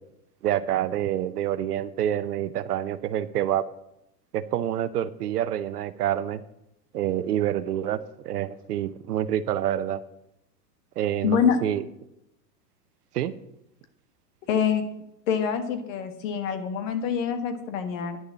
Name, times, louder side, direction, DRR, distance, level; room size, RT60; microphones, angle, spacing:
voice 1, 0.4-3.6 4.3-6.4 6.9-8.0 8.2-10.0 11.0-11.8 13.1-13.3, right 11 dB, 70° right, 14 dB, 0.9 m, -27 dB
voice 2, 11.2-11.6 14.5-14.8 15.3-18.2, left 7 dB, 50° left, 8 dB, 1.8 m, -25 dB
10.5 x 6.5 x 7.2 m, 0.82 s
hypercardioid pair, 120°, 49 cm